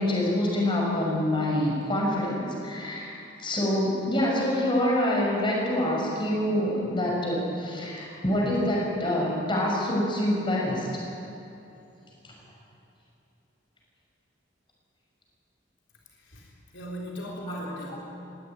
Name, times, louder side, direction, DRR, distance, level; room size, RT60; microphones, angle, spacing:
voice 1, 0.0-10.9 12.2-12.3 17.5-17.6, left 1 dB, 25° left, -2 dB, 6.3 m, -26 dB
voice 2, 16.2-18.0, equal, 75° left, -2 dB, 3.9 m, -38 dB
21.5 x 17.5 x 9.4 m, 2.9 s
head